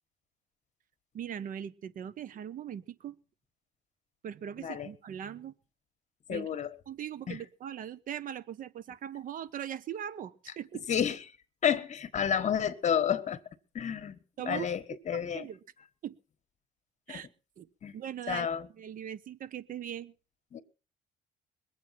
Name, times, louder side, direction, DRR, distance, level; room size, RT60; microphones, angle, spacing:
voice 1, 1.1-3.2 4.2-5.5 6.3-6.5 6.9-10.8 14.4-14.7 15.1-15.6 16.0-16.1 17.1-17.3 17.6-17.7 17.9-18.5 18.8-20.1, right 9 dB, 55° right, 1.1 m, -40 dB
voice 2, 4.6-4.9 6.3-6.8 7.3-7.4 10.9-11.2 11.6-13.4 13.7-14.2 14.4-15.5 17.1-17.2 17.8-18.0 18.3-18.7 20.5-20.6, left 8 dB, 45° left, 1.4 m, -30 dB
21.5 x 8.3 x 5.9 m
cardioid pair, 110°, 17 cm